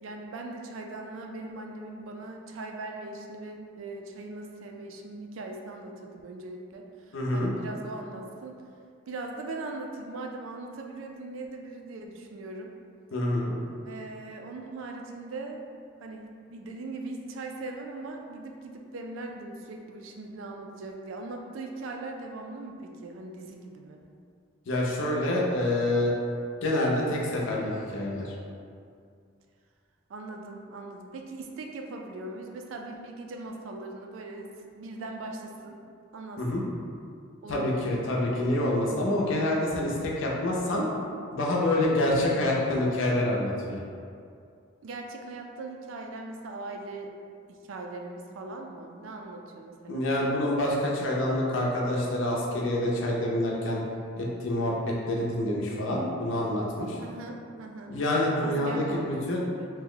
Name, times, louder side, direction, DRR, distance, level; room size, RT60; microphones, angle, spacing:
voice 1, 0.0-8.6 9.1-12.7 13.8-15.6 16.0-24.0 30.1-35.8 36.1-36.4 37.4-38.0 44.8-47.1 47.5-50.0 57.0-58.0 58.4-59.7, right 2 dB, 70° right, 2 dB, 0.3 m, -40 dB
voice 2, 7.1-7.5 13.1-13.5 24.7-26.1 26.6-28.4 36.4-36.6 37.5-40.9 41.3-43.8 49.9-53.8 54.2-57.0 57.9-59.5, left 1 dB, 70° left, -3 dB, 0.6 m, -27 dB
2.8 x 2.1 x 3.7 m, 2.3 s
head